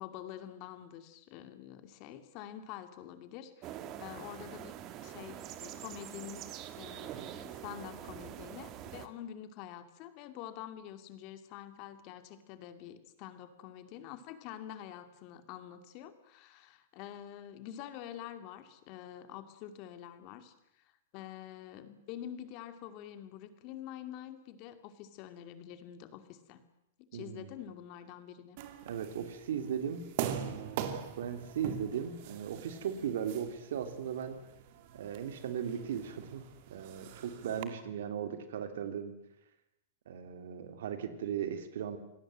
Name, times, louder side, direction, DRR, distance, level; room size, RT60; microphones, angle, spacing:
voice 1, 0.0-4.7 5.0-6.5 6.7-26.6 27.1-28.6, left 11 dB, 45° left, 10 dB, 2.5 m, -47 dB
sound 1, 3.6-9.1, right 11 dB, 35° right, 1.9 m, -45 dB
voice 2, 27.1-27.5 28.8-30.0 30.4-34.4 34.9-36.4 36.7-39.1 40.1-42.0, right 8 dB, 75° right, 9 dB, 3.0 m, -37 dB
sound 2, 28.6-37.6, right 9 dB, 50° right, 2.7 m, -43 dB
27.0 x 18.5 x 7.7 m, 0.82 s
hypercardioid pair, 140°, 0 cm